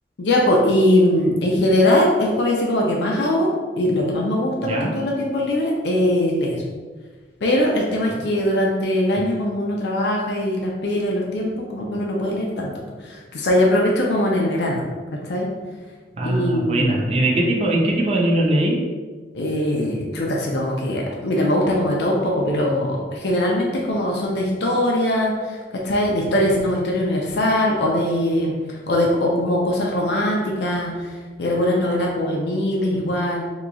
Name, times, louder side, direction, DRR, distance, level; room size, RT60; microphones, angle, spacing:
voice 1, 0.2-3.5 3.8-6.6 7.4-12.7 13.0-14.8 15.2-15.5 16.2-17.0 19.3-25.6 25.8-28.5 28.9-31.1 31.4-33.5, left 1 dB, 70° left, -1 dB, 0.5 m, -21 dB
voice 2, 4.6-5.0 8.1-8.2 9.2-9.3 16.1-18.8, right 1 dB, 35° right, -1 dB, 0.4 m, -21 dB
2.9 x 2.3 x 3.8 m, 1.4 s
head